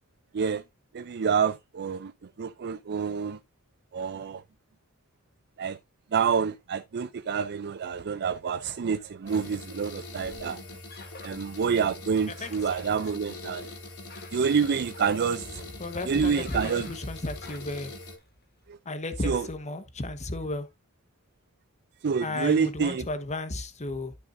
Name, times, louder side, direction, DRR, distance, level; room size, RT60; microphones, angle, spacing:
voice 1, 0.9-2.1 2.4-3.4 3.9-4.4 5.6-5.8 6.1-10.6 11.2-13.7 14.3-15.6 16.0-16.9 18.7-18.8 19.2-19.5 22.0-23.1, right 6 dB, 50° right, 0.4 m, -27 dB
sound 1, 8.4-18.7, left 4 dB, 50° left, 3.0 m, -50 dB
sound 2, 9.3-18.2, left 2 dB, 75° left, 3.2 m, -43 dB
voice 2, 15.8-17.9 18.9-20.7 22.2-24.1, left 2 dB, 30° left, 1.1 m, -33 dB
12.0 x 6.1 x 2.6 m
head